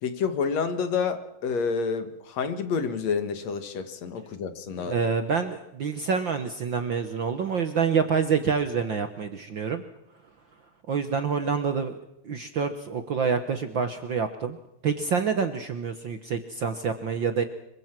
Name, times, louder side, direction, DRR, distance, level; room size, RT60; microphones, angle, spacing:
voice 1, 0.0-4.9, left 5 dB, 65° left, 9 dB, 2.8 m, -29 dB
voice 2, 4.7-9.8 10.9-12.0 12.2-14.6 14.8-17.4, right 6 dB, 55° right, 8 dB, 1.4 m, -27 dB
25.5 x 24.0 x 6.1 m, 0.82 s
omnidirectional pair, 3.4 m